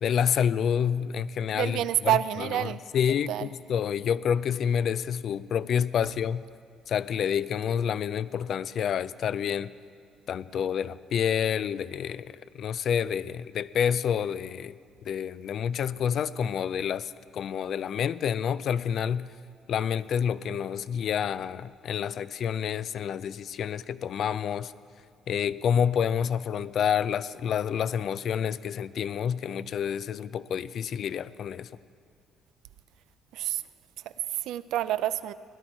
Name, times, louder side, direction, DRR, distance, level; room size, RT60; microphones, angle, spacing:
voice 1, 0.0-1.8 2.6-6.4 6.9-9.7 10.3-14.7 15.0-19.3 19.7-24.7 25.3-31.7, left 8 dB, 60° left, 17 dB, 0.3 m, -28 dB
voice 2, 1.5-2.8 3.3-3.5 33.3-33.6 34.3-35.3, right 12 dB, 75° right, 15 dB, 0.3 m, -28 dB
16.0 x 10.5 x 4.5 m, 2.2 s
supercardioid pair, 75°, 0 cm